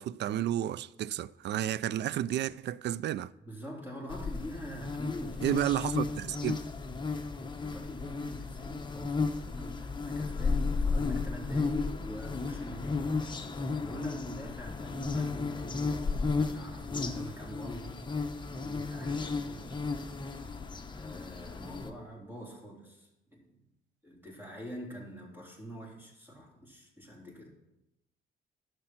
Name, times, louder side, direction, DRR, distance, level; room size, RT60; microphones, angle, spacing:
voice 1, 0.0-3.3 5.4-6.6, right 11 dB, 60° right, 0.4 m, -31 dB
voice 2, 3.5-5.6 7.3-13.2 13.8-18.1 18.5-20.3 20.8-23.5 24.0-27.5, equal, 10° right, 3.5 m, -44 dB
sound 1, 4.1-21.9, left 4 dB, 25° left, 1.0 m, -34 dB
11.0 x 6.6 x 5.9 m
cardioid pair, 90°, 20 cm